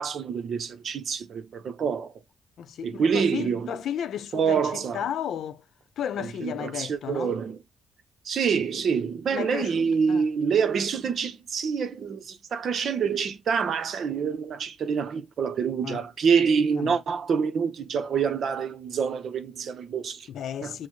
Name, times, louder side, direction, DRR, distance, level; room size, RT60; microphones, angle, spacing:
voice 1, 0.0-2.1 2.8-3.8 4.3-5.0 6.2-7.6 8.2-20.3 20.6-20.9, right 6 dB, 60° right, 0.7 m, -26 dB
voice 2, 2.6-5.6 6.0-7.4 9.3-9.7 10.1-10.2 15.8-16.0 16.7-17.0 20.3-20.9, left 9 dB, 70° left, 0.5 m, -33 dB
6.2 x 2.1 x 3.1 m
cardioid pair, 90°, 0 cm